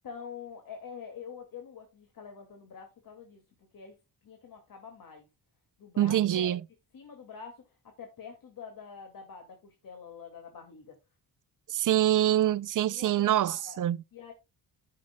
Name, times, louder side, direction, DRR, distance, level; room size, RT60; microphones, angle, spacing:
voice 1, 0.0-3.4 3.7-4.0 4.2-5.3 5.8-6.6 6.9-11.0 12.9-13.8 14.1-14.3, left 6 dB, 60° left, 2.3 m, -46 dB
voice 2, 6.0-6.6 11.7-14.0, right 12 dB, 55° right, 0.5 m, -25 dB
13.5 x 6.5 x 2.2 m
cardioid pair, 120°, 39 cm